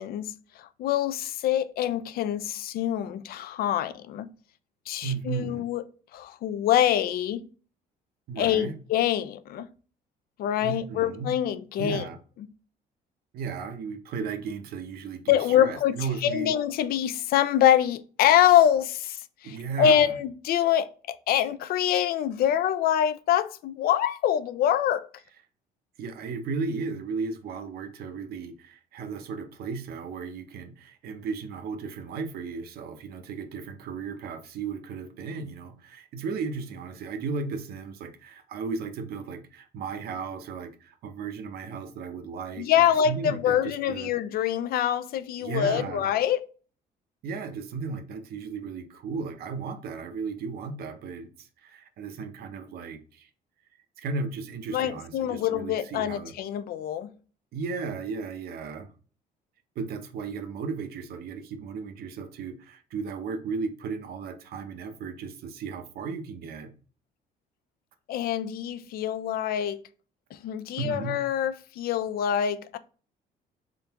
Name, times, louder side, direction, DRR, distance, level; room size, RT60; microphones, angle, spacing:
voice 1, 0.0-4.3 4.9-5.8 6.1-7.5 8.4-9.7 10.4-12.1 15.3-15.9 16.2-25.1 42.6-46.5 54.7-57.1 68.1-69.8 70.3-72.8, left 10 dB, 65° left, 0.4 m, -25 dB
voice 2, 5.0-5.7 8.3-8.8 10.6-11.3 11.8-12.2 13.3-16.5 19.4-20.2 26.0-44.1 45.4-46.1 47.2-53.3 54.0-56.3 57.5-58.9 59.8-66.7 70.8-71.2, right 5 dB, 65° right, 0.7 m, -35 dB
3.8 x 3.3 x 2.8 m
cardioid pair, 110°, 17 cm